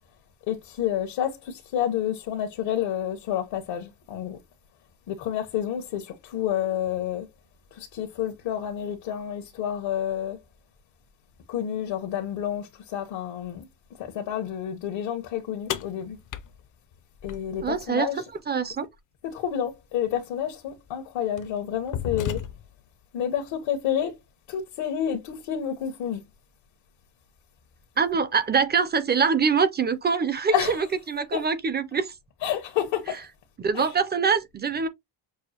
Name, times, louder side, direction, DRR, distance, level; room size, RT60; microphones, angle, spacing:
voice 1, 0.5-4.4 5.1-7.3 7.7-10.4 11.5-13.7 14.0-16.2 17.2-18.2 19.2-22.4 23.1-24.2 24.5-26.2 30.5-30.8 31.3-31.5 32.4-33.2 33.7-33.9, left 10 dB, 75° left, 1.1 m, -29 dB
sound 1, 15.7-17.9 19.7-19.8 20.7-20.9 21.4-22.9, left 9 dB, 45° left, 0.5 m, -34 dB
voice 2, 17.6-18.1 18.5-18.8 28.0-32.1 33.6-34.9, right 5 dB, 25° right, 0.4 m, -24 dB
6.2 x 2.4 x 2.8 m
cardioid pair, 135°, 45 cm